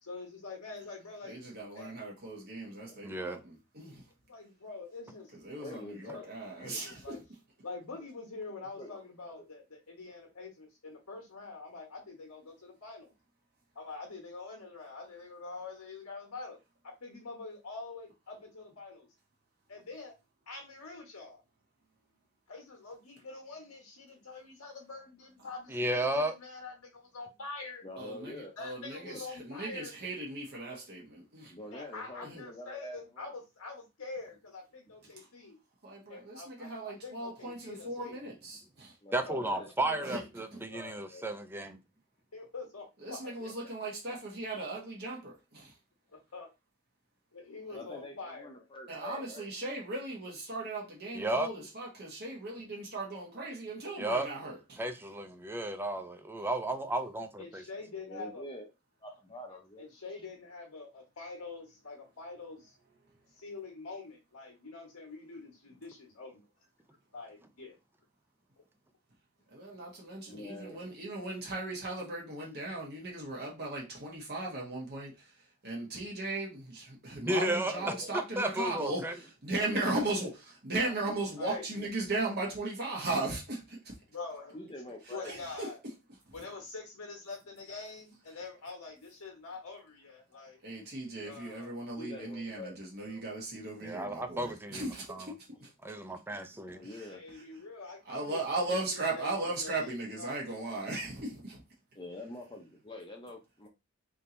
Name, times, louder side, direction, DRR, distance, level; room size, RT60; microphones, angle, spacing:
voice 1, 0.0-1.4 1.7-2.0 4.2-5.3 6.1-6.2 6.7-7.2 7.6-13.1 13.7-16.6 16.8-19.1 19.7-20.1 20.5-21.4 22.5-27.8 28.6-29.9 31.7-35.6 36.1-36.7 37.0-38.2 39.2-39.7 42.3-43.7 46.1-46.5 47.3-48.7 57.4-58.4 59.5-62.8 63.4-66.5 67.1-67.7 81.4-81.6 84.1-84.6 85.1-85.8 86.3-90.6 91.2-91.7 97.1-98.8 99.1-99.3 99.6-100.7, left 3 dB, 80° left, 1.4 m, -45 dB
voice 2, 1.2-4.0 5.3-7.2 27.9-31.5 32.2-32.4 35.2-35.3 35.8-38.9 40.0-40.2 40.5-40.6 43.0-45.7 47.7-47.9 48.9-54.8 69.5-83.9 85.1-85.7 86.3-86.4 90.6-95.7 96.8-97.4 98.0-101.6, right 2 dB, 45° right, 1.3 m, -37 dB
voice 3, 3.0-3.4 25.7-26.3 39.1-41.8 51.2-51.5 54.0-54.3 54.8-57.6 77.2-77.7 78.4-79.1 93.8-94.8 95.1-95.3 95.8-96.8, right 1 dB, 10° right, 0.5 m, -33 dB
voice 4, 5.6-6.3 6.6-6.8 8.8-9.3 27.8-28.5 29.0-29.2 31.5-33.3 39.0-40.2 40.7-41.3 47.7-49.5 58.1-58.7 59.0-59.9 70.3-70.8 77.5-78.1 79.5-80.3 80.8-81.1 81.5-81.6 84.5-85.5 92.0-92.8 93.0-93.2 96.7-97.2 101.9-103.7, left 1 dB, 25° left, 0.8 m, -46 dB
3.6 x 2.8 x 3.8 m
head